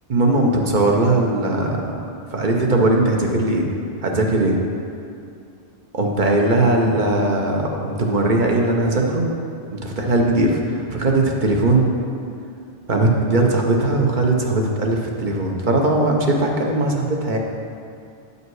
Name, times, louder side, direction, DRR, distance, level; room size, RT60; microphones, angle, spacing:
voice 1, 0.1-1.9 2.3-3.7 4.0-4.6 5.9-9.3 9.7-11.9 12.9-17.4, right 2 dB, 45° right, 0 dB, 1.0 m, -19 dB
9.0 x 5.5 x 4.7 m, 2.4 s
omnidirectional pair, 1.1 m